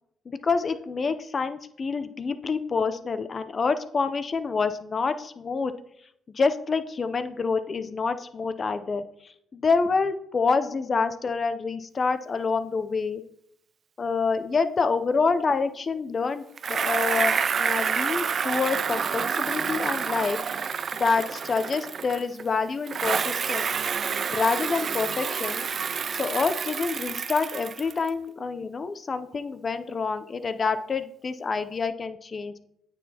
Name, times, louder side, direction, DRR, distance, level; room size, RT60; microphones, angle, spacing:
voice 1, 0.3-5.7 6.3-13.2 14.0-20.4 20.9-23.7 24.3-25.7 26.1-32.5, left 4 dB, 40° left, 10 dB, 0.6 m, -27 dB
Bicycle, 16.6-22.4 22.9-28.1, right 6 dB, 50° right, 0.4 m, -28 dB
9.0 x 6.1 x 2.9 m, 0.74 s
cardioid pair, 90°, 0 cm